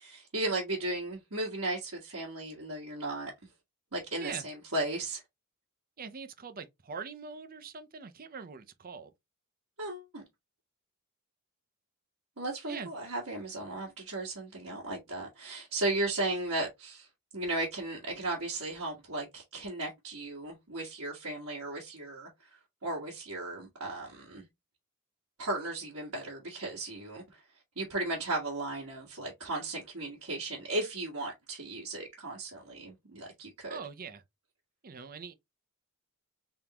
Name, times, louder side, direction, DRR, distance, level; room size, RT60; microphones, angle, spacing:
voice 1, 0.0-3.3 3.9-5.2 9.8-10.2 12.4-17.1 17.3-22.5 22.8-24.4 25.4-27.4 27.7-33.8, right 2 dB, 80° right, 1.6 m, -35 dB
voice 2, 6.0-9.1 12.7-12.9 33.7-34.2 34.8-35.3, right 5 dB, 45° right, 0.6 m, -42 dB
3.6 x 3.6 x 2.9 m
head